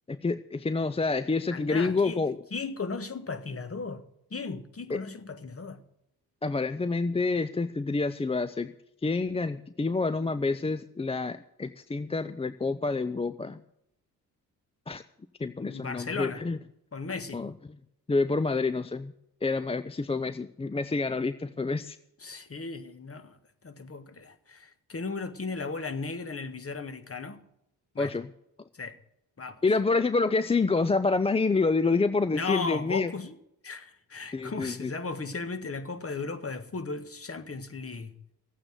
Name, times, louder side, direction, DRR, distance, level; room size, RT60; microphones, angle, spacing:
voice 1, 0.1-2.4 4.9-5.0 6.4-8.7 9.0-13.6 14.9-15.0 15.4-16.6 17.3-17.5 18.1-19.1 19.4-22.0 28.0-28.3 29.6-33.1 34.3-34.9, left 3 dB, 15° left, 0.5 m, -28 dB
voice 2, 1.5-2.2 2.5-4.0 4.3-5.8 15.6-16.4 16.9-17.5 22.2-23.4 23.6-27.4 27.9-28.1 28.7-29.0 29.4-29.6 32.3-33.3 33.6-38.2, left 4 dB, 30° left, 1.6 m, -36 dB
14.0 x 8.8 x 7.7 m
hypercardioid pair, 45°, 48 cm